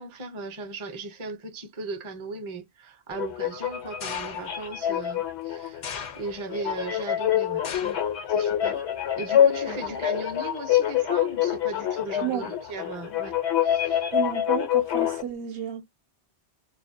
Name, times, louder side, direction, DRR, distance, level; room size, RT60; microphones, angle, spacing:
voice 1, 0.0-5.8 6.2-8.0 8.3-8.8 9.2-14.0, right 3 dB, 35° right, 0.6 m, -37 dB
sound 1, 3.1-15.2, left 10 dB, 90° left, 1.0 m, -26 dB
sound 2, 4.0-4.7 5.8-6.6 7.6-8.1 8.5-9.0 9.9-10.0, left 7 dB, 55° left, 0.6 m, -37 dB
voice 2, 14.1-15.9, right 9 dB, 65° right, 0.7 m, -32 dB
2.4 x 2.1 x 2.5 m
omnidirectional pair, 1.1 m